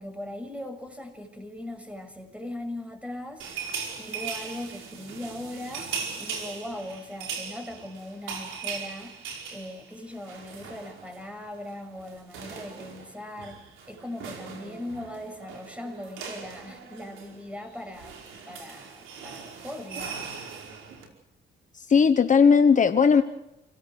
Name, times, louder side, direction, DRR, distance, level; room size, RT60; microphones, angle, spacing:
voice 1, 0.0-3.4 4.0-9.1 9.5-18.2 18.4-20.4, left 1 dB, 5° right, 5 dB, 6.7 m, -39 dB
sound 1, 3.4-11.3 11.5-11.7 12.0-21.1, right 6 dB, 85° right, 5.1 m, -39 dB
voice 2, 21.7-23.2, left 6 dB, 40° left, 8 dB, 1.2 m, -18 dB
28.5 x 17.5 x 6.5 m, 0.88 s
cardioid pair, 90°, 20 cm